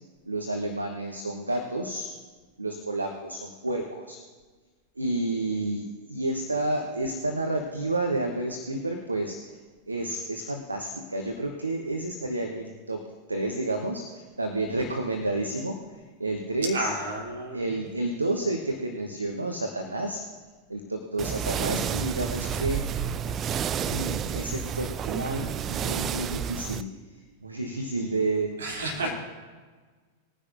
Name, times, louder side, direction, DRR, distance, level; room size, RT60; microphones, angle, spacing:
voice 1, 0.3-2.1 2.6-4.2 5.0-9.6 9.9-13.0 13.3-16.9 17.5-20.2 20.7-22.9 23.8-28.5 29.0-29.1, right 2 dB, 80° right, 4 dB, 1.0 m, -30 dB
voice 2, 16.7-17.7 28.6-29.1, right 1 dB, 65° right, -2 dB, 3.2 m, -31 dB
sound 1, 21.2-26.8, right 8 dB, 30° right, 0.4 m, -30 dB
20.5 x 10.0 x 2.6 m, 1.4 s
figure-of-eight pair, 90°, 0 cm